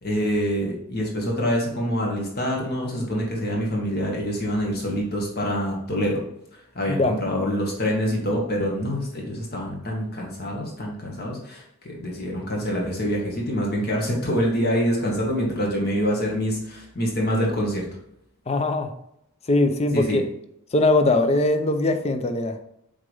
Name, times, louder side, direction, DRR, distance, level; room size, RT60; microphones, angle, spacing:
voice 1, 0.0-6.2 6.7-17.9 19.9-20.2, equal, 45° left, -1 dB, 1.7 m, -26 dB
voice 2, 18.5-18.9 19.5-20.2 20.7-22.6, left 2 dB, 30° left, 7 dB, 0.5 m, -21 dB
7.2 x 3.9 x 3.4 m, 0.78 s
head